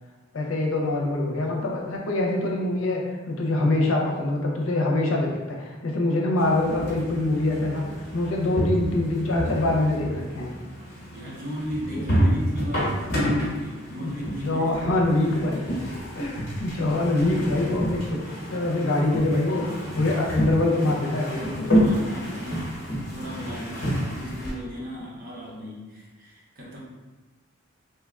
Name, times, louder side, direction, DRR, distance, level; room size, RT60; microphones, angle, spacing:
voice 1, 0.3-7.8 8.1-10.5 14.0-14.1 14.4-15.6 16.1-18.2 18.5-19.7 19.9-21.9, left 2 dB, 90° left, -1 dB, 0.6 m, -24 dB
sound 1, 6.4-24.5, equal, 55° left, 1.0 m, -29 dB
voice 2, 11.1-15.2 21.6-22.7 23.1-26.8, equal, 45° right, -5 dB, 0.8 m, -36 dB
2.8 x 2.2 x 3.5 m, 1.2 s
head